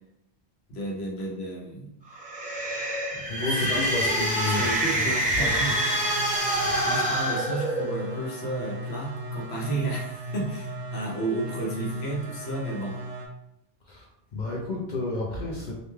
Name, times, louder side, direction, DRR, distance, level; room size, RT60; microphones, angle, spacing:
voice 1, 0.7-1.9 3.1-5.7 6.8-13.0, right 2 dB, 75° left, -3 dB, 1.0 m, -33 dB
sound 1, 2.1-8.2, right 1 dB, 10° right, 0.6 m, -26 dB
voice 2, 3.3-4.7 4.9-5.1 5.4-5.7 6.6-6.8 13.9-14.1 14.3-15.7, left 2 dB, 55° left, -2 dB, 0.5 m, -31 dB
sound 2, 5.3-13.3, right 1 dB, 75° right, 0.8 m, -37 dB
2.5 x 2.2 x 3.0 m, 0.83 s
omnidirectional pair, 1.1 m